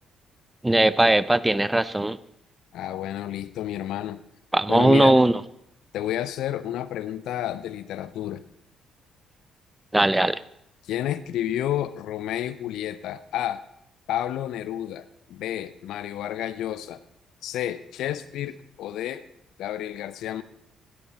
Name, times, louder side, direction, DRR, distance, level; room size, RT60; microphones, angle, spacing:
voice 1, 0.6-2.2 4.5-5.3 9.9-10.4, right 1 dB, 10° right, 18 dB, 0.6 m, -19 dB
voice 2, 2.7-4.2 4.7-5.2 5.9-8.4 10.9-13.6 14.1-17.0 17.4-19.2 19.6-20.4, left 12 dB, 60° left, 15 dB, 0.6 m, -30 dB
17.0 x 12.0 x 4.1 m, 0.76 s
figure-of-eight pair, 45°, 0 cm